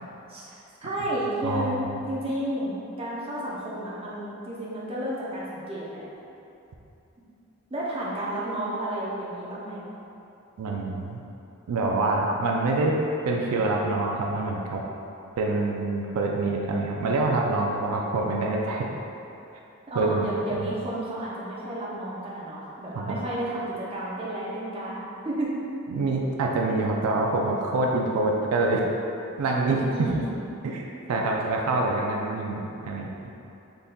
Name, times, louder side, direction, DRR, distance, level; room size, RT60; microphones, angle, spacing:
voice 1, 0.8-1.8 2.1-6.1 7.7-9.9 19.9-25.6 29.9-30.4 31.1-31.2, right 1 dB, 25° right, -7 dB, 0.6 m, -32 dB
voice 2, 1.4-1.9 10.6-11.2 11.7-13.0 13.2-14.8 15.4-18.9 19.9-20.6 22.9-23.2 25.9-28.8 29.4-30.2 30.6-30.8 31.1-33.1, right 2 dB, 85° right, 0 dB, 0.4 m, -26 dB
3.9 x 3.5 x 2.2 m, 2.8 s
head